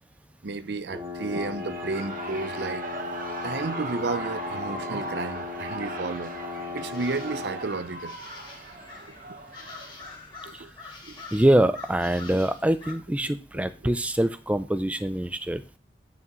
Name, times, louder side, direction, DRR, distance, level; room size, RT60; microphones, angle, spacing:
voice 1, 0.4-2.9 3.4-6.3 6.7-8.2 9.1-9.4 10.4-10.7 11.0-11.2 13.8-14.0, right 3 dB, 70° right, 0.6 m, -32 dB
sound 1, 0.9-7.7, left 4 dB, 25° right, 2.7 m, -37 dB
Shout / Cheering, 1.3-10.2, right 2 dB, 50° right, 1.2 m, -38 dB
early-mountain-morning, 6.9-12.9, left 3 dB, 25° left, 2.8 m, -45 dB
voice 2, 11.3-15.6, right 1 dB, 10° right, 0.4 m, -24 dB
9.3 x 5.9 x 3.0 m
head